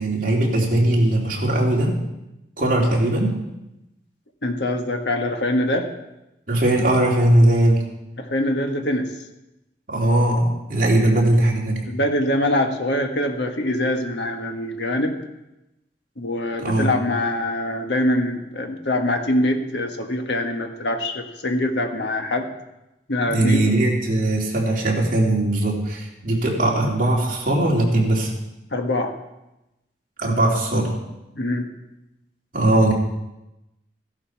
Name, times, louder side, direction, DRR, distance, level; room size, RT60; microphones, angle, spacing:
voice 1, 0.0-2.0 2.6-3.4 6.5-7.8 9.9-11.9 16.6-16.9 23.3-28.3 30.2-30.9 32.5-32.9, right 1 dB, 50° right, -3 dB, 3.1 m, -19 dB
voice 2, 4.4-5.9 8.2-9.1 11.0-11.1 11.8-15.2 16.2-22.5 23.1-23.7 28.7-29.1 31.3-31.7, left 1 dB, 75° left, 4 dB, 1.5 m, -24 dB
15.0 x 11.5 x 4.7 m, 0.94 s
head